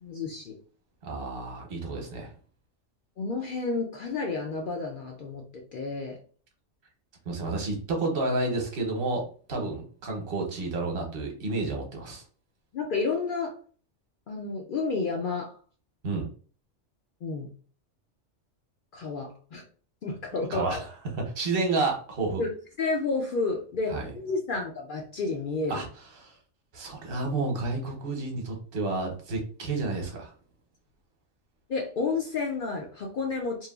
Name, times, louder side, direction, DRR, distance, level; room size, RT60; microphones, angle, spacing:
voice 1, 0.0-0.5 3.2-5.4 5.7-6.2 12.7-13.6 14.3-15.6 17.2-17.5 18.9-19.6 20.0-20.8 22.4-22.5 22.8-25.8 31.7-33.7, left 4 dB, 60° left, 1 dB, 0.5 m, -31 dB
voice 2, 1.0-2.3 7.3-12.2 16.0-16.3 20.5-20.8 21.3-22.4 23.9-24.1 25.7-25.9 26.2-26.4 26.7-30.3, right 3 dB, 55° right, 1 dB, 1.0 m, -30 dB
3.0 x 2.2 x 2.3 m, 0.41 s
omnidirectional pair, 1.2 m